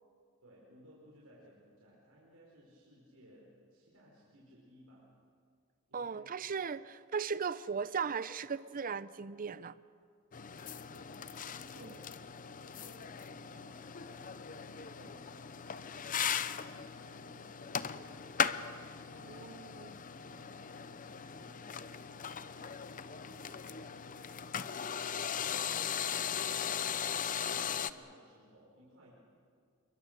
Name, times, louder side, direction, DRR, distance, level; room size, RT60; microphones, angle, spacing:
voice 1, 0.4-5.1 5.9-6.5 10.7-24.3 24.6-26.7 26.9-29.1, equal, 80° right, -5 dB, 5.1 m, -60 dB
voice 2, 5.9-9.8 11.8-11.9 19.2-20.0, right 6 dB, 40° right, 16 dB, 0.6 m, -37 dB
sound 1, 10.3-27.9, left 7 dB, 40° left, 0.7 m, -38 dB
28.0 x 23.0 x 6.9 m, 2.2 s
head